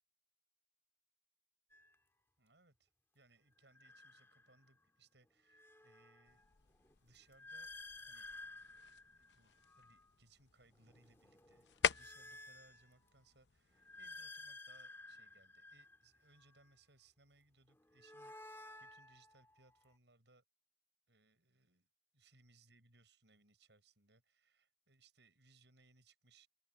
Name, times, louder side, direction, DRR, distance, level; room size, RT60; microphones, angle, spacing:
sound 1, 1.7-1.9 3.6-4.8 5.3-10.1 10.6-13.3 13.7-16.7 17.7-20.0, left 2 dB, 15° left, 1.9 m, -55 dB
voice 1, 2.4-2.9 3.1-6.4 7.0-7.7 8.0-8.3 9.2-20.4 21.1-21.9 22.1-26.5, right 3 dB, 75° right, 6.7 m, -69 dB
sound 2, 6.2-14.2, left 6 dB, 75° left, 0.8 m, -45 dB
open air
head